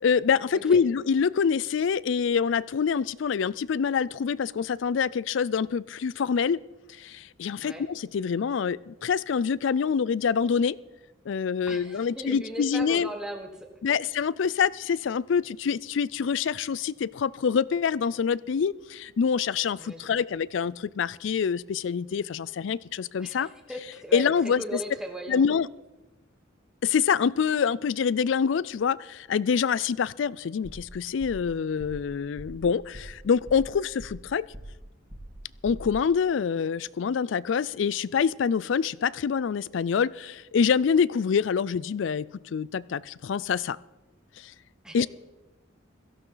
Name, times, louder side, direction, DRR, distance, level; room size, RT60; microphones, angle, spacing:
voice 1, 0.0-6.6 7.0-10.8 11.3-13.1 13.8-23.5 24.1-24.8 25.3-25.7 26.8-34.5 35.6-43.8 44.4-44.5 44.9-45.1, left 6 dB, 70° left, 21 dB, 0.4 m, -26 dB
voice 2, 11.7-13.7 19.8-20.2 23.2-25.5 44.8-45.1, right 1 dB, 5° right, 2 dB, 1.2 m, -38 dB
Heartbeat Fast, 30.6-30.9 31.2-31.5 31.8-32.1 32.4-32.6 32.9-33.2 33.5-34.3 34.5-34.8 35.1-35.4 35.6-35.9, equal, 30° right, 2.2 m, -43 dB
17.0 x 14.5 x 3.9 m, 1.1 s
head